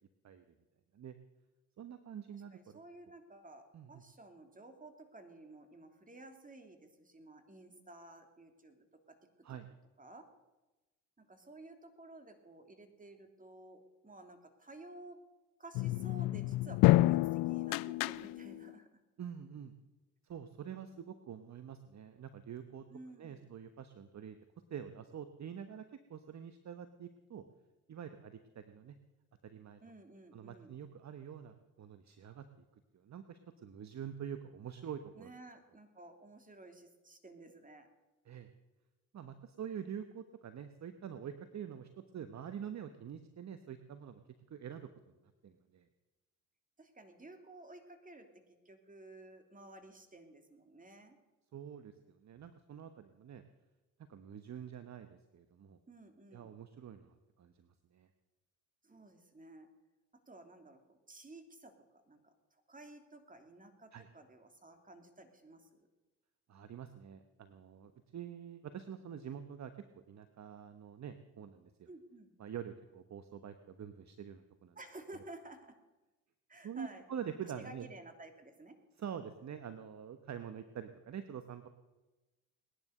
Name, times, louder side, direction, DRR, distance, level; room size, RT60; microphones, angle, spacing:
voice 1, 1.8-2.8 3.7-4.0 9.4-9.7 19.2-19.7 20.3-22.8 23.2-24.4 24.7-25.8 26.1-27.4 27.9-28.9 29.4-29.8 30.3-32.4 32.9-35.3 38.3-38.5 39.1-44.2 44.5-44.9 45.4-45.9 51.5-53.4 54.1-55.8 56.3-58.1 63.9-64.1 66.5-69.7 70.1-71.9 72.4-74.8 76.6-77.9 79.0-81.7, right 8 dB, 40° right, 9 dB, 1.2 m, -46 dB
voice 2, 2.3-9.2 10.0-10.2 11.2-15.2 15.6-19.0 22.9-23.5 29.8-30.7 35.1-37.9 46.8-51.2 55.9-56.5 58.8-59.7 60.3-61.7 62.1-65.9 71.9-72.3 74.7-75.7 76.5-77.1 77.4-78.8, right 2 dB, 20° right, 6 dB, 2.9 m, -54 dB
sound 1, 15.7-18.7, left 18 dB, 55° left, 0.5 m, -29 dB
19.5 x 11.0 x 6.6 m, 1.1 s
hypercardioid pair, 55°, 42 cm